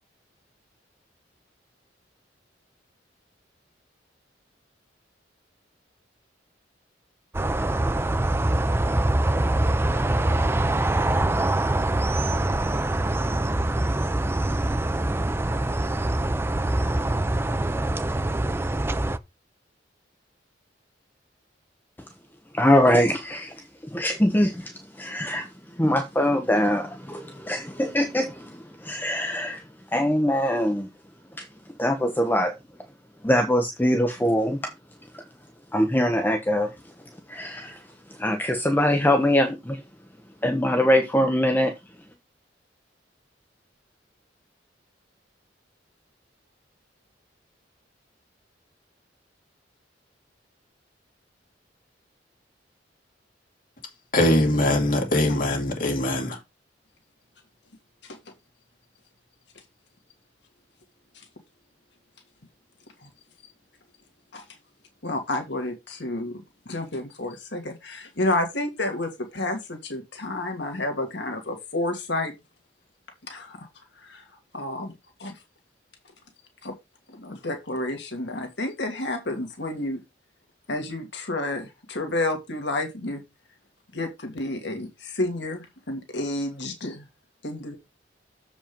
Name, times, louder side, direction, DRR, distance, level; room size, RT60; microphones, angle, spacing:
sound 1, 7.3-19.2, right 1 dB, 15° right, 0.4 m, -24 dB
voice 1, 22.5-23.7 23.9-25.5 25.8-29.6 29.9-30.9 31.4-31.5 31.8-32.5 33.2-34.6 35.7-36.7 37.3-37.8 38.1-39.8 40.4-41.7, left 1 dB, 10° left, 0.8 m, -23 dB
voice 2, 54.1-56.4, left 1 dB, 50° left, 2.6 m, -22 dB
voice 3, 65.0-72.3 73.3-73.7 73.9-74.3 74.5-74.9 75.2-75.4 76.6-76.8 77.1-80.0 80.7-83.2 83.9-87.1 87.4-87.7, left 2 dB, 65° left, 1.8 m, -30 dB
7.3 x 5.1 x 5.2 m
head